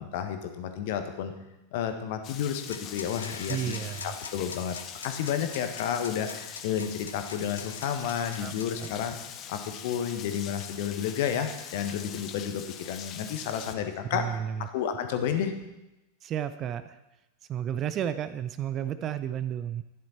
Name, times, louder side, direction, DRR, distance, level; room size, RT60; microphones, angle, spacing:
voice 1, 0.0-1.3 1.7-9.2 9.5-14.4 14.7-15.5, left 8 dB, 50° left, 7 dB, 1.3 m, -31 dB
Rain, 2.2-13.7, left 9 dB, 35° left, 0.9 m, -43 dB
sound 1, 2.5-9.0, left 5 dB, 70° left, 0.9 m, -43 dB
voice 2, 3.5-4.1 8.4-8.5 8.8-8.9 14.1-14.7 16.2-17.0 17.5-19.8, right 10 dB, 30° right, 13 dB, 0.6 m, -32 dB
12.5 x 10.5 x 4.3 m, 0.97 s
figure-of-eight pair, 90°, 0 cm